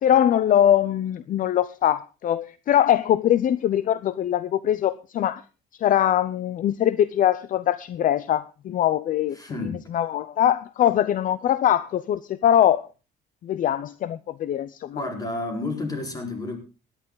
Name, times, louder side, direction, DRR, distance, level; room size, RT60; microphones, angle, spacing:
voice 1, 0.0-5.4 5.8-9.4 9.7-12.9 13.4-15.0, left 11 dB, 50° left, 0.6 m, -22 dB
voice 2, 9.4-9.8 14.9-16.6, left 2 dB, 20° left, 4.6 m, -30 dB
17.5 x 11.0 x 3.9 m
cardioid pair, 110°, 17 cm